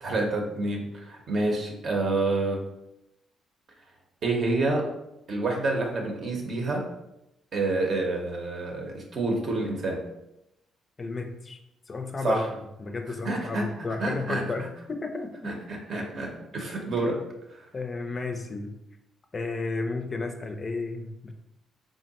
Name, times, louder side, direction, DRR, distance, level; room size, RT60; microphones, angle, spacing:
voice 1, 0.0-2.6 4.2-4.9 5.3-6.9 7.5-10.0 12.2-12.5 13.2-13.7 14.0-14.4 15.4-17.2 17.5-17.6, right 2 dB, 55° right, 1 dB, 0.8 m, -28 dB
voice 2, 11.0-11.6 11.9-15.5 17.7-18.8 19.3-21.3, left 3 dB, 35° left, 5 dB, 0.4 m, -33 dB
3.7 x 2.1 x 4.0 m, 0.89 s
cardioid pair, 90°, 0 cm